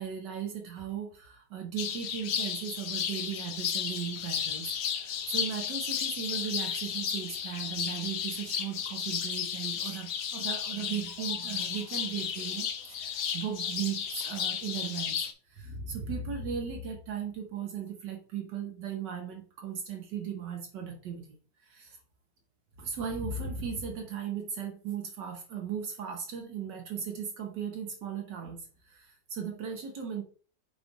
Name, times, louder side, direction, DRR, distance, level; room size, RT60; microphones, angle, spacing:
voice 1, 0.0-21.4 21.6-22.0 22.8-30.2, right 7 dB, 75° right, 3 dB, 1.6 m, -37 dB
sound 1, 1.8-15.3, left 8 dB, 60° left, 0.9 m, -34 dB
7.2 x 2.5 x 5.2 m, 0.40 s
omnidirectional pair, 2.0 m